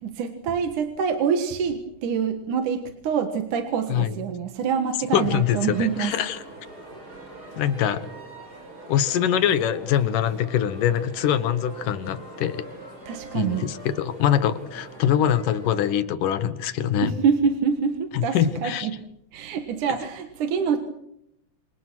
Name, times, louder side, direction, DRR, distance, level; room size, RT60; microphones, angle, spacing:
voice 1, 0.0-6.2 7.9-8.0 13.1-13.7 17.0-18.4 18.6-18.9 19.3-20.8, right 6 dB, 70° right, 7 dB, 3.0 m, -25 dB
voice 2, 5.1-6.4 7.6-8.0 8.9-12.7 13.3-17.1 18.1-18.9, left 9 dB, 80° left, 13 dB, 2.9 m, -23 dB
sound 1, 5.2-15.9, right 1 dB, 30° right, 5.2 m, -43 dB
27.5 x 27.0 x 6.2 m, 0.78 s
omnidirectional pair, 3.7 m